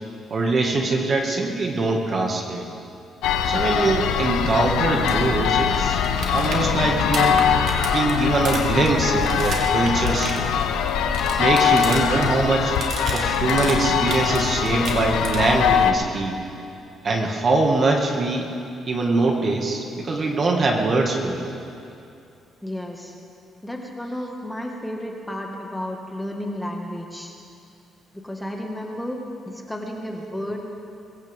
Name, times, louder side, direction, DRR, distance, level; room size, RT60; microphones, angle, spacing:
voice 1, 0.3-2.6 3.4-6.0 6.3-7.4 7.8-10.5 11.3-12.8 13.1-16.4 17.0-18.5 18.9-21.4, right 3 dB, 40° right, 2 dB, 1.9 m, -23 dB
sound 1, 3.2-15.9, left 7 dB, 90° left, 0.9 m, -22 dB
sound 2, 5.0-5.1 5.4-5.5 5.7-12.3 12.6-14.4 14.6-15.6 17.7-17.8, right 3 dB, 60° right, 2.5 m, -32 dB
voice 2, 22.6-23.1 23.6-27.3 28.1-29.2 29.5-30.6, left 1 dB, 5° left, 0 dB, 1.7 m, -32 dB
23.0 x 15.5 x 3.6 m, 2.6 s
cardioid pair, 110°, 0 cm